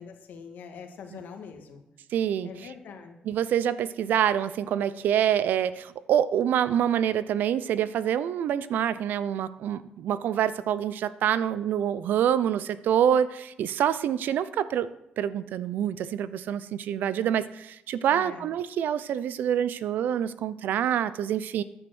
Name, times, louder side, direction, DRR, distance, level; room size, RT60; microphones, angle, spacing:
voice 1, 0.0-1.9 2.4-3.2 18.1-18.5, left 6 dB, 70° left, 5 dB, 1.7 m, -43 dB
voice 2, 2.1-2.5 3.3-14.9 15.2-21.6, right 9 dB, 75° right, 16 dB, 0.6 m, -26 dB
9.9 x 8.9 x 6.3 m, 0.84 s
cardioid pair, 70°, 3 cm